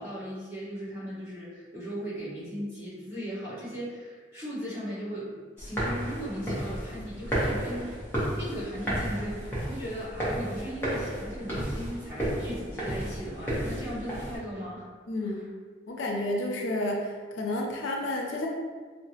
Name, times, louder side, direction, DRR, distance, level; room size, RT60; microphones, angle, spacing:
voice 1, 0.0-8.0 8.4-14.9 15.2-15.5, equal, 15° right, -12 dB, 1.3 m, -37 dB
sound 1, 5.6-14.4, right 1 dB, 10° left, 0.7 m, -32 dB
voice 2, 15.1-15.4 15.9-18.5, left 1 dB, 75° left, 0 dB, 0.4 m, -30 dB
3.6 x 2.0 x 2.8 m, 1.5 s
head